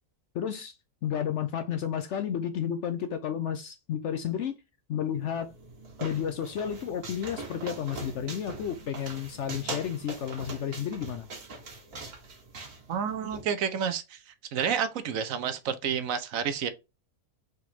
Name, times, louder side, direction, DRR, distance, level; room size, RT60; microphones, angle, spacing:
voice 1, 0.3-0.8 1.0-4.6 4.9-5.5 6.0-11.3, left 9 dB, 65° left, 0.7 m, -32 dB
sound 1, 5.3-13.4, right 3 dB, 85° right, 2.0 m, -42 dB
voice 2, 12.9-14.2 14.5-16.7, right 7 dB, 70° right, 1.0 m, -29 dB
4.7 x 3.8 x 2.8 m
omnidirectional pair, 1.6 m